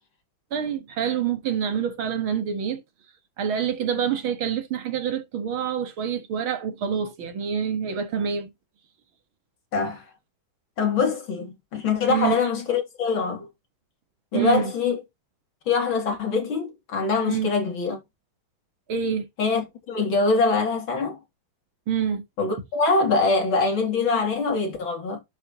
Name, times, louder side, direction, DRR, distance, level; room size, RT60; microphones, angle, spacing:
voice 1, 0.5-2.8 3.4-8.5 12.1-12.3 14.3-14.7 17.3-17.5 18.9-19.3 21.9-22.2, right 8 dB, 75° right, 2.4 m, -26 dB
voice 2, 9.7-10.1 10.8-13.5 14.3-15.0 15.7-18.0 19.4-21.2 22.4-25.2, left 4 dB, 70° left, 3.7 m, -24 dB
11.0 x 6.1 x 3.0 m
omnidirectional pair, 2.3 m